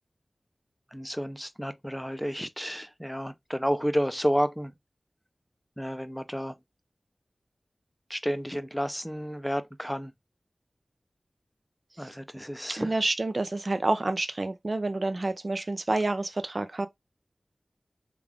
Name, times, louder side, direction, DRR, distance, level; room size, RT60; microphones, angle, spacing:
voice 1, 0.9-4.7 5.8-6.5 8.1-10.1 12.0-12.9, equal, ahead, 0.5 m, -31 dB
voice 2, 12.8-16.9, right 2 dB, 50° right, 0.5 m, -28 dB
3.4 x 2.4 x 3.4 m
wide cardioid pair, 55°, 0 cm